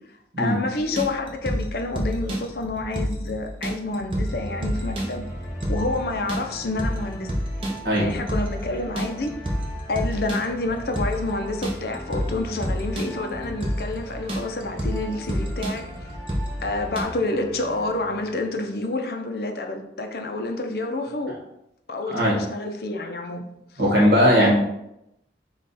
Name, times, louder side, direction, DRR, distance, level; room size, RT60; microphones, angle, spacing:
voice 1, 0.4-5.3 5.7-7.3 7.9-9.3 9.9-15.8 16.6-21.4 21.9-23.4 23.7-23.8 24.4-24.5, left 2 dB, 60° left, 4 dB, 0.6 m, -28 dB
sound 1, 0.8-17.0, equal, 30° right, 0.8 m, -29 dB
sound 2, 4.2-18.7, equal, 20° left, 0.8 m, -40 dB
voice 2, 23.8-24.5, equal, 60° right, -4 dB, 1.3 m, -18 dB
5.4 x 2.4 x 4.1 m, 0.83 s
head